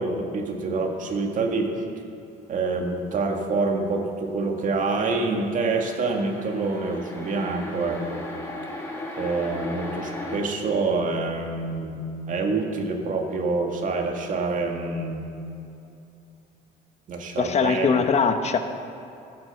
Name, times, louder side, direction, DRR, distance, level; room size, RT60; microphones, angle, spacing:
voice 1, 0.0-1.7 2.5-8.2 9.2-15.2 17.1-17.9, right 3 dB, 50° right, 2 dB, 2.0 m, -26 dB
sound 1, 5.6-10.4, left 1 dB, 15° left, 2.3 m, -36 dB
voice 2, 17.4-18.6, left 5 dB, 40° left, 7 dB, 1.1 m, -21 dB
15.0 x 7.9 x 7.0 m, 2.7 s
cardioid pair, 110°, 17 cm